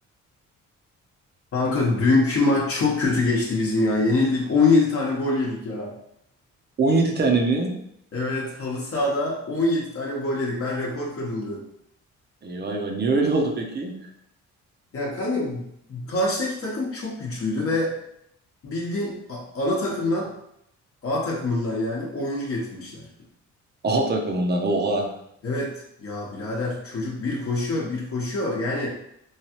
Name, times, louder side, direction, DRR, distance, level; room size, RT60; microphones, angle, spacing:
voice 1, 1.5-5.9 8.1-11.6 14.9-18.0 18.6-20.3 21.0-23.1 25.4-28.9, left 2 dB, 50° left, -3 dB, 0.9 m, -25 dB
voice 2, 6.8-7.7 12.4-14.0 23.8-25.1, right 3 dB, 35° right, 2 dB, 0.6 m, -22 dB
3.1 x 2.3 x 2.9 m, 0.75 s
cardioid pair, 90°, 30 cm